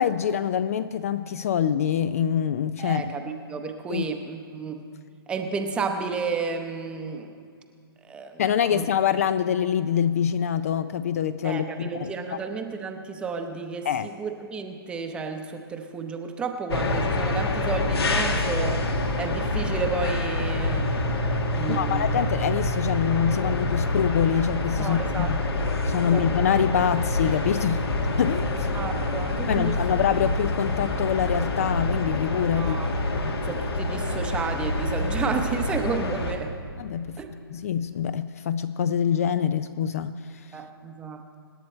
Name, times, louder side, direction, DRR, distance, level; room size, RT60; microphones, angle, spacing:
voice 1, 0.0-3.1 3.9-4.1 8.4-12.4 13.8-14.1 21.7-25.4 25.8-27.9 28.2-28.7 29.5-32.8 33.1-33.4 36.8-37.2 37.5-40.1, left 8 dB, 35° left, 13 dB, 0.4 m, -25 dB
voice 2, 2.8-4.9 5.3-7.3 8.0-8.4 8.7-8.8 11.4-18.9 19.2-20.9 21.6-22.2 24.8-25.6 26.0-26.2 28.5-29.7 32.6-32.9 33.4-36.5 37.2-37.3 40.5-41.3, right 5 dB, 10° right, 5 dB, 0.8 m, -32 dB
sound 1, 16.7-36.3, left 2 dB, 80° left, 2.2 m, -26 dB
25.5 x 10.5 x 4.4 m, 2.3 s
hypercardioid pair, 160°, 13 cm